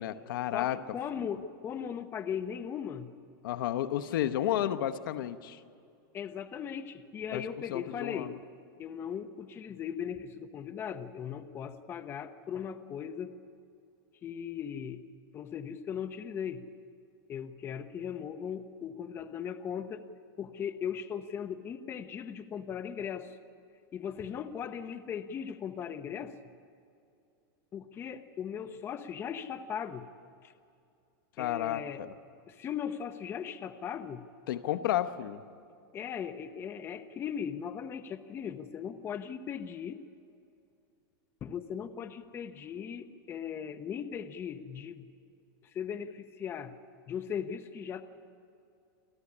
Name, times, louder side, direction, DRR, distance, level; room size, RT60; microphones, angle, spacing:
voice 1, 0.0-0.8 3.4-5.6 7.3-7.4 7.7-8.4 31.4-32.1 34.5-35.4, left 12 dB, 70° left, 11 dB, 1.1 m, -32 dB
voice 2, 0.5-3.1 6.1-8.3 8.8-13.4 14.2-15.0 15.3-16.6 17.3-20.0 20.4-23.4 23.9-26.3 27.7-30.1 30.4-30.5 31.4-32.0 32.5-34.2 35.9-40.0 41.4-45.0 45.7-46.8 47.1-48.0, left 8 dB, 20° left, 10 dB, 0.8 m, -38 dB
27.0 x 14.5 x 9.9 m, 2.5 s
supercardioid pair, 155°, 12 cm